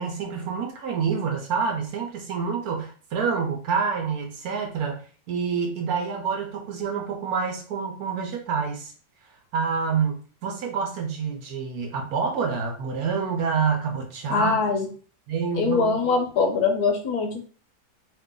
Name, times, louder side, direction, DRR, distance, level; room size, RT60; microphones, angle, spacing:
voice 1, 0.0-8.9 9.5-14.6 15.3-16.0, right 5 dB, 65° right, 2 dB, 1.0 m, -27 dB
voice 2, 14.3-14.9 15.6-17.3, left 4 dB, 70° left, 4 dB, 1.1 m, -22 dB
2.8 x 2.5 x 3.7 m, 0.40 s
omnidirectional pair, 1.9 m